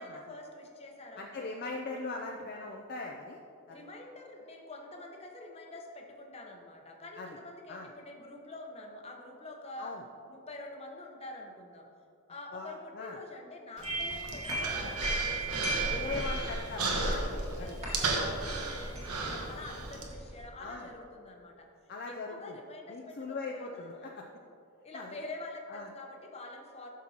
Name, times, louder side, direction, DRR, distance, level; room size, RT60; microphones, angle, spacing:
voice 1, 0.0-1.5 2.0-2.5 3.7-10.0 10.3-11.9 12.3-16.5 17.0-21.7 22.1-24.1 24.8-26.9, left 2 dB, 25° left, 1 dB, 0.8 m, -46 dB
voice 2, 1.2-3.4 3.7-3.9 7.2-7.4 7.7-7.9 9.8-10.0 12.5-13.2 15.9-17.0 17.6-17.8 20.6-20.9 21.9-22.6 22.9-24.3 24.9-25.2 25.7-25.9, left 3 dB, 45° left, 1 dB, 0.4 m, -40 dB
sound 1, 13.8-20.4, right 2 dB, 30° right, 2.0 m, -36 dB
Human voice, 13.8-20.0, right 3 dB, 85° right, 1.1 m, -35 dB
12.0 x 6.1 x 2.9 m, 2.5 s
head